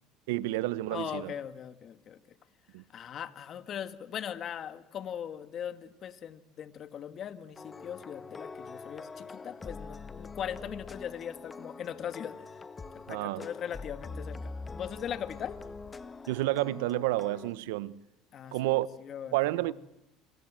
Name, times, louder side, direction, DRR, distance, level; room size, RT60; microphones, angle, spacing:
voice 1, 0.3-1.3 2.7-2.8 13.1-13.5 16.3-18.0 18.5-18.9 19.3-19.7, right 17 dB, 85° right, 1.0 m, -30 dB
voice 2, 0.9-2.4 2.9-12.5 13.1-15.6 18.3-18.7 19.0-19.7, left 9 dB, 45° left, 2.0 m, -40 dB
sound 1, 7.6-17.5, left 4 dB, 20° left, 1.6 m, -44 dB
26.5 x 25.5 x 7.7 m
supercardioid pair, 95°, 0 cm